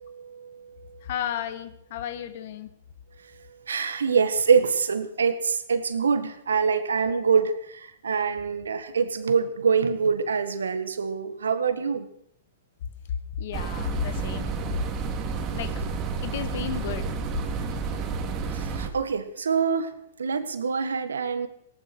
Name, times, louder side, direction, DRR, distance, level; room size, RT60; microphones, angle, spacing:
voice 1, 0.0-1.0 3.7-12.1 18.4-19.9 20.2-21.5, right 6 dB, 80° right, 11 dB, 1.7 m, -25 dB
voice 2, 1.0-2.7 13.1-14.6 15.5-15.8 16.2-17.0, left 9 dB, 60° left, 11 dB, 1.8 m, -32 dB
sound 1, 13.5-18.9, right 5 dB, 35° right, 2.5 m, -30 dB
18.0 x 11.5 x 6.3 m, 0.71 s
hypercardioid pair, 115°, 0 cm